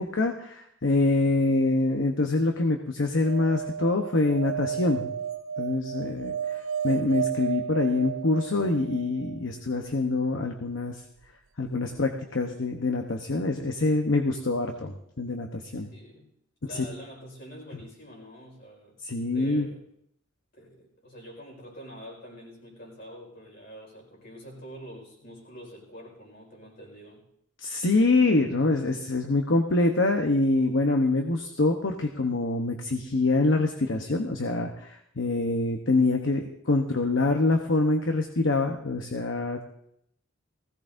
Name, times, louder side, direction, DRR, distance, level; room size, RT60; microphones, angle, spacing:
voice 1, 0.0-5.1 5.6-6.3 6.8-11.0 11.6-15.9 16.7-16.8 19.0-19.7 27.6-39.6, left 2 dB, 65° left, 3 dB, 0.9 m, -25 dB
sound 1, 3.2-9.4 11.7-11.8 11.9-12.0, right 8 dB, 85° right, 0.5 m, -33 dB
voice 2, 15.8-16.3 16.6-19.0 19.3-19.8 20.5-27.3, equal, 50° left, -1 dB, 4.8 m, -46 dB
19.5 x 16.5 x 2.6 m, 0.75 s
head